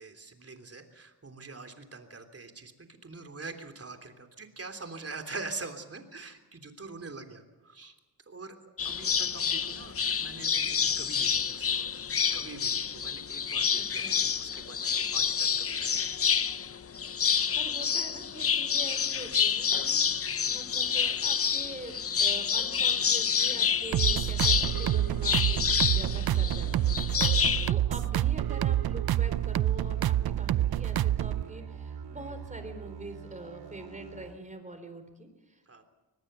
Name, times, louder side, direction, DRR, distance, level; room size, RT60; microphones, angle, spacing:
voice 1, 0.0-8.0 8.3-11.9 12.3-16.1 27.2-27.5 32.2-32.5 35.6-35.8, right 3 dB, 35° right, 6 dB, 3.3 m, -44 dB
sound 1, 8.8-27.7, left 7 dB, 35° left, 0.7 m, -28 dB
voice 2, 13.8-14.2 17.5-27.0 27.7-35.8, right 1 dB, 20° right, 8 dB, 4.3 m, -44 dB
sound 2, 23.0-34.4, right 7 dB, 85° right, 2.3 m, -48 dB
sound 3, 23.9-31.4, right 12 dB, 65° right, 0.6 m, -27 dB
24.5 x 19.5 x 6.8 m, 1.2 s
cardioid pair, 90°, 41 cm